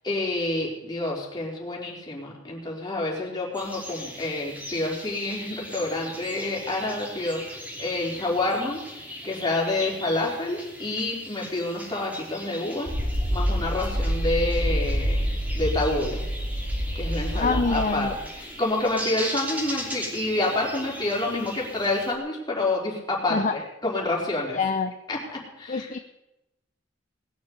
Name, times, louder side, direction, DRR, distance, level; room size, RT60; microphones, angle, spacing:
voice 1, 0.0-8.8 9.2-12.9 13.3-15.2 15.5-16.2 16.9-24.6 25.1-25.9, left 2 dB, 25° left, -3 dB, 4.1 m, -28 dB
sound 1, 3.5-22.2, equal, 10° right, 3.0 m, -39 dB
sound 2, 12.9-18.2, equal, 65° right, 4.6 m, -27 dB
voice 2, 17.3-18.1 23.3-23.6 24.5-24.9 25.7-26.0, left 4 dB, 40° left, 7 dB, 0.7 m, -25 dB
19.5 x 7.2 x 8.1 m, 0.94 s
head